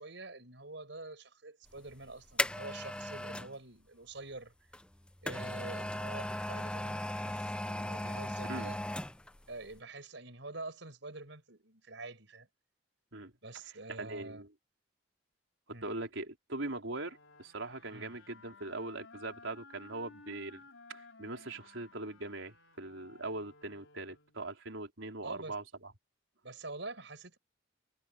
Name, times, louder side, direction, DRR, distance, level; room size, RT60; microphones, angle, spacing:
voice 1, 0.0-4.5 5.2-8.8 9.5-12.5 13.4-14.4 15.7-15.9 17.9-18.1 25.2-25.5 26.4-27.4, right 2 dB, 70° right, 5.6 m, -46 dB
sound 1, 1.8-3.5 4.7-9.4 9.7-9.8, left 1 dB, 5° left, 0.7 m, -37 dB
voice 2, 14.0-14.5 15.8-20.6 20.9-25.9, right 2 dB, 85° right, 4.1 m, -41 dB
sound 2, 17.0-24.5, left 3 dB, 85° left, 4.2 m, -57 dB
head